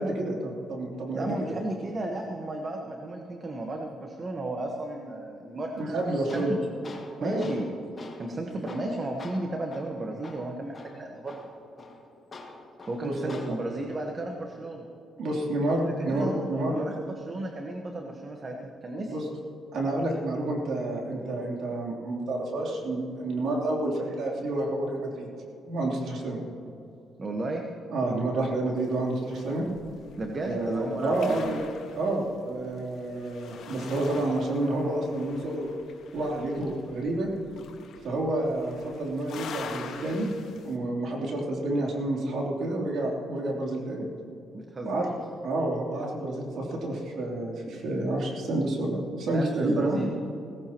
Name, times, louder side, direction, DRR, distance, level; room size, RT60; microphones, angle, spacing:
voice 1, 0.0-1.5 5.8-6.6 7.2-7.5 13.0-13.6 15.2-16.8 19.0-19.3 19.7-25.3 25.6-26.4 27.9-29.6 30.4-31.6 31.9-35.7 36.1-37.3 38.0-40.3 40.6-44.1 44.8-45.1 45.4-50.0, right 2 dB, 70° right, -2 dB, 3.3 m, -29 dB
voice 2, 1.1-6.0 6.3-6.6 7.2-7.7 8.2-11.5 12.9-14.8 15.8-19.2 27.2-27.6 30.2-31.6 44.5-45.0 49.3-50.1, right 2 dB, 35° right, 2 dB, 1.3 m, -34 dB
Tools, 5.8-13.8, left 3 dB, 35° left, 1.8 m, -46 dB
sound 1, 28.8-40.7, left 6 dB, 70° left, 1.5 m, -46 dB
17.5 x 16.5 x 3.0 m, 2.7 s
cardioid pair, 90°, 0 cm